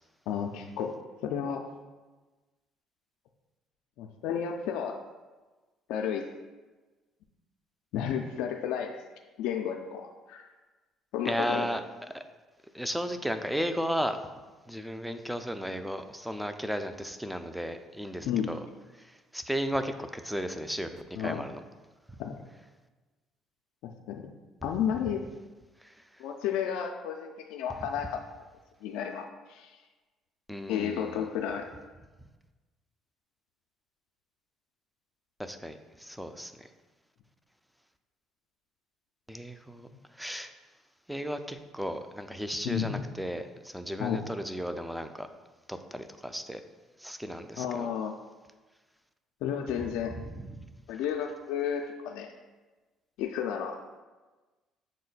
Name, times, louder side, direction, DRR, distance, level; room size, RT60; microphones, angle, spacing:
voice 1, 0.3-0.9 1.2-1.6 4.0-5.0 5.9-6.3 7.9-9.0 9.4-10.5 11.1-11.7 18.3-18.6 21.1-21.4 22.2-22.4 23.8-24.3 24.6-25.2 26.2-28.2 28.8-29.8 30.7-31.7 42.6-43.0 44.0-44.3 47.6-48.2 49.4-50.1 50.9-52.3 53.2-54.0, left 8 dB, 80° left, 3 dB, 0.3 m, -32 dB
voice 2, 11.3-11.8 12.1-12.2 12.7-14.2 14.7-18.6 19.3-21.6 30.5-31.2 35.4-36.7 39.3-39.9 40.2-40.5 41.1-43.4 43.7-45.3 45.7-46.6 47.0-47.9, equal, ahead, 8 dB, 0.4 m, -34 dB
6.2 x 2.1 x 3.9 m, 1.2 s
supercardioid pair, 85°, 0 cm